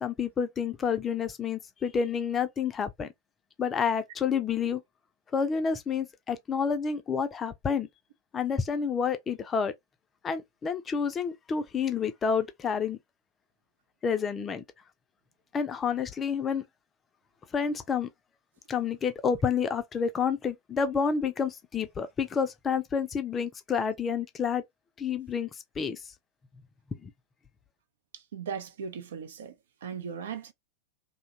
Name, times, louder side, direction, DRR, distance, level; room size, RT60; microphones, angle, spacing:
voice 1, 0.0-3.1 3.6-4.8 5.3-7.9 8.3-9.7 10.2-13.0 14.0-14.6 15.5-16.6 17.5-18.1 18.7-24.6 25.0-25.5 25.8-26.0 27.0-27.1, left 6 dB, 20° left, 0.5 m, -29 dB
voice 2, 28.1-29.5 29.8-30.5, right 6 dB, 60° right, 0.5 m, -38 dB
2.7 x 2.2 x 2.8 m
figure-of-eight pair, 90°, 0 cm